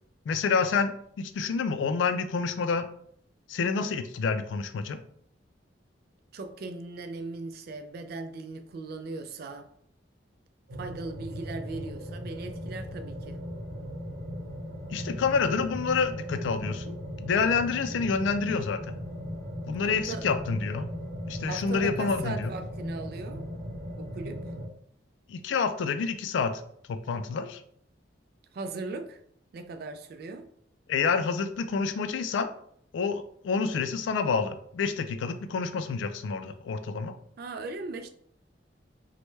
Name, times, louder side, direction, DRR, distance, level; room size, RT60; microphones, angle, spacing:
voice 1, 0.3-2.8 3.5-5.0 14.9-18.9 19.7-20.9 21.3-22.5 25.3-26.5 26.9-27.6 30.9-32.5 32.9-37.1, left 5 dB, 85° left, 0.3 m, -28 dB
voice 2, 6.3-9.7 10.8-13.4 19.9-20.3 21.5-24.6 28.5-29.2 29.5-30.5 37.4-38.1, right 3 dB, 55° right, 0.3 m, -38 dB
sound 1, 10.7-24.7, equal, 85° right, 0.9 m, -38 dB
3.2 x 2.1 x 3.1 m
head